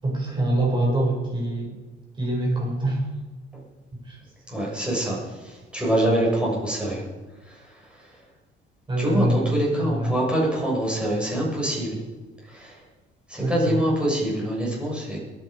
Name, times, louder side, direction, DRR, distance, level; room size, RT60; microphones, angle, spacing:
voice 1, 0.0-1.7 2.2-3.0 4.1-4.2 8.9-10.2 13.4-13.9, right 1 dB, 25° right, -2 dB, 6.8 m, -25 dB
voice 2, 4.5-5.2 5.7-7.0 9.0-12.0 12.5-12.7 13.3-15.2, right 1 dB, 5° right, -4 dB, 6.9 m, -24 dB
22.5 x 10.0 x 5.2 m, 1.2 s
cardioid pair, 140°, 20 cm